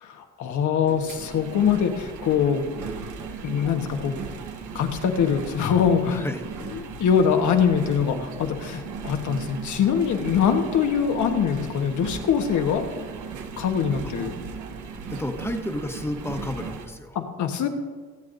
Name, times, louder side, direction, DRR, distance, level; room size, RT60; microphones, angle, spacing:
voice 1, 0.0-2.6 3.4-4.2 4.7-6.2 6.7-12.8 13.6-14.3 17.1-17.7, left 7 dB, 75° left, 5 dB, 1.3 m, -23 dB
Engine, 0.8-16.9, right 5 dB, 80° right, 1.2 m, -37 dB
voice 2, 6.0-6.5 14.0-14.1 15.1-17.2, left 1 dB, 10° left, 4 dB, 1.2 m, -31 dB
23.0 x 8.5 x 2.6 m, 1.5 s
cardioid pair, 90°, 30 cm